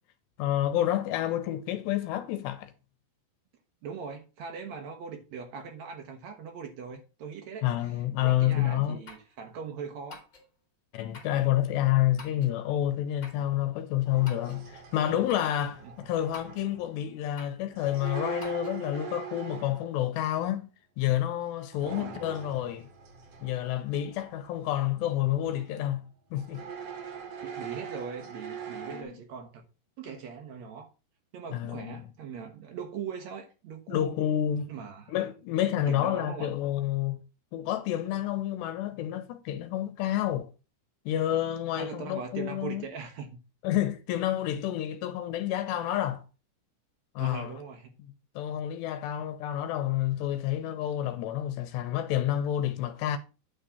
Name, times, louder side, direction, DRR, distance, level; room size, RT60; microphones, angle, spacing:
voice 1, 0.4-2.7 7.6-9.0 10.9-20.7 21.0-22.9 23.4-26.0 26.3-26.6 28.9-29.2 31.5-32.1 33.9-34.7 35.1-37.2 37.5-40.5 41.1-42.8 43.6-46.2 47.2-47.5 48.4-53.2, left 12 dB, 80° left, 2.9 m, -29 dB
voice 2, 3.8-8.0 8.2-10.2 15.8-15.9 21.8-22.2 27.4-29.6 30.0-30.9 31.3-34.2 34.7-35.1 35.8-36.5 41.8-43.4 47.2-47.9, right 6 dB, 90° right, 1.5 m, -40 dB
sound 1, 8.4-8.5 9.1-9.3 10.1-10.5 11.1-11.4 12.2-12.6 13.2-13.5 14.3-14.6 15.3-15.5 16.3-16.7 17.4-17.6 18.4-18.8, left 4 dB, 30° left, 2.4 m, -48 dB
sound 2, 14.0-17.0 17.7-20.0 21.7-25.2 25.4-25.9 26.4-29.0, right 6 dB, 60° right, 1.6 m, -42 dB
9.6 x 3.8 x 7.0 m
omnidirectional pair, 5.0 m